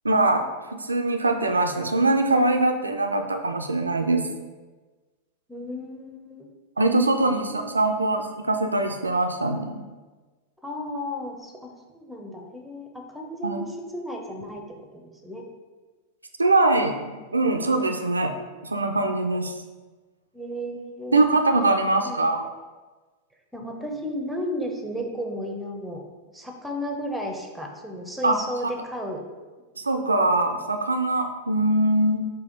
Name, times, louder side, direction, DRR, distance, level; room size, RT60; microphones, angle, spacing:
voice 1, 0.0-4.2 6.8-9.8 13.4-13.6 16.4-18.3 18.6-19.6 21.1-22.4 28.2-28.4 28.6-28.7 29.8-32.2, right 2 dB, 80° right, 5 dB, 0.3 m, -22 dB
voice 2, 5.5-6.5 7.1-7.7 10.6-14.6 14.9-15.4 20.3-21.2 21.8-22.2 23.5-26.0 26.3-29.2, equal, 5° right, 2 dB, 0.6 m, -34 dB
4.9 x 2.7 x 3.8 m, 1.3 s
figure-of-eight pair, 90°, 0 cm